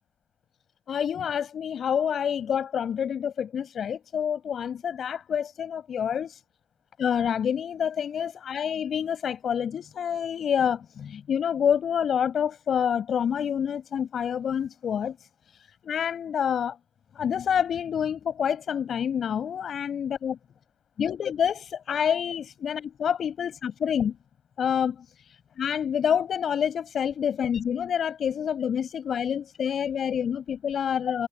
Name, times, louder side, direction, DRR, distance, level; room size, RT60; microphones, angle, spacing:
voice 1, 0.9-6.4 7.0-15.2 15.6-16.8 17.1-20.4 21.0-24.2 24.6-25.1 25.6-31.3, left 8 dB, 60° left, 6.0 m, -27 dB
cardioid pair, 90°, 0 cm